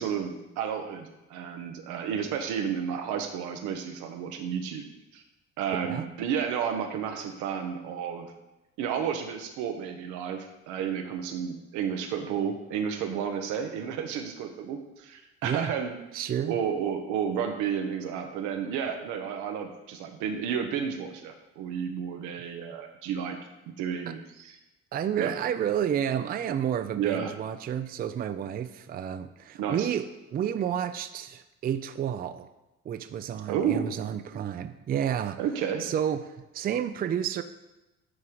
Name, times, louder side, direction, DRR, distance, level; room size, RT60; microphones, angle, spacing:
voice 1, 0.0-4.8 5.1-5.2 5.6-8.3 8.8-15.9 16.5-23.4 23.7-24.6 25.2-25.3 26.9-27.3 29.6-29.9 33.5-33.9 35.4-35.9, right 7 dB, 90° right, 5 dB, 1.0 m, -31 dB
voice 2, 15.4-15.7 16.1-16.6 24.1-24.2 24.9-32.5 32.9-35.4 35.8-37.4, right 9 dB, 30° right, 11 dB, 0.4 m, -30 dB
9.7 x 3.7 x 4.6 m, 1.0 s
cardioid pair, 105°, 29 cm